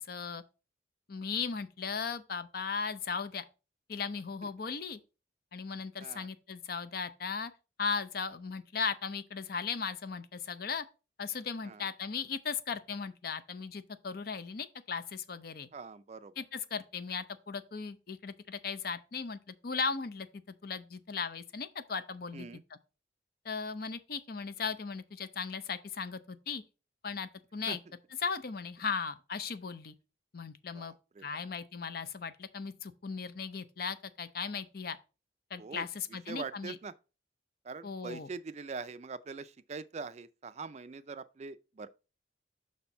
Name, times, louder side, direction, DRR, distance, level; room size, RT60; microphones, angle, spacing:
voice 1, 0.1-0.4 1.1-3.4 3.9-5.0 5.5-7.5 7.8-10.8 11.2-15.7 16.4-22.5 23.4-26.6 27.0-27.8 28.2-29.9 30.3-30.9 31.2-35.0 35.5-36.8 37.8-38.3, left 5 dB, 55° left, 0.6 m, -37 dB
voice 2, 15.7-16.3 22.3-22.6 27.7-27.8 30.7-31.4 35.6-35.9 36.3-36.9 37.6-41.9, right 4 dB, 35° right, 0.4 m, -43 dB
6.1 x 4.4 x 5.4 m
head